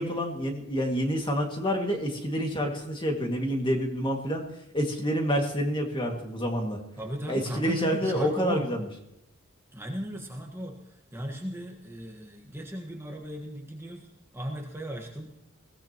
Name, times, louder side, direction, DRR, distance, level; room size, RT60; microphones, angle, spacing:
voice 1, 0.0-4.5 4.7-6.8 7.3-8.9, equal, 25° left, 2 dB, 2.1 m, -28 dB
voice 2, 7.0-8.7 9.7-14.1 14.3-15.3, equal, 10° right, 1 dB, 1.4 m, -36 dB
22.0 x 16.5 x 3.0 m, 0.84 s
head